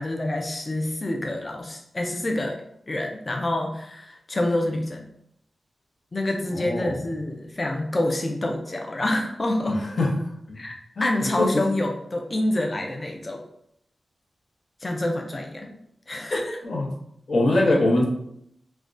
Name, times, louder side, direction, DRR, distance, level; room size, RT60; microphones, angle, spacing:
voice 1, 0.0-2.6 2.9-5.1 6.1-9.8 10.6-13.4 14.8-15.7 16.1-16.6, left 1 dB, 30° left, 1 dB, 0.3 m, -27 dB
voice 2, 6.6-6.9 10.0-10.1 10.5-10.6 11.0-11.6 16.6-16.9 17.3-18.0, left 2 dB, 70° left, -2 dB, 0.7 m, -22 dB
3.2 x 2.1 x 2.5 m, 0.72 s
wide cardioid pair, 145°, 0 cm